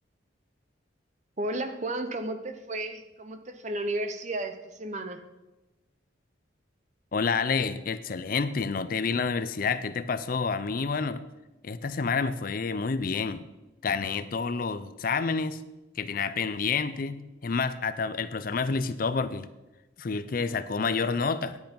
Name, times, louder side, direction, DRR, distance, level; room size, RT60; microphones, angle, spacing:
voice 1, 1.4-5.2, right 1 dB, 35° right, 8 dB, 0.8 m, -33 dB
voice 2, 7.1-11.2 11.6-13.4 13.8-15.6 16.0-19.5 20.0-21.6, left 5 dB, 45° left, 13 dB, 0.5 m, -29 dB
10.5 x 8.1 x 5.3 m, 1.0 s
head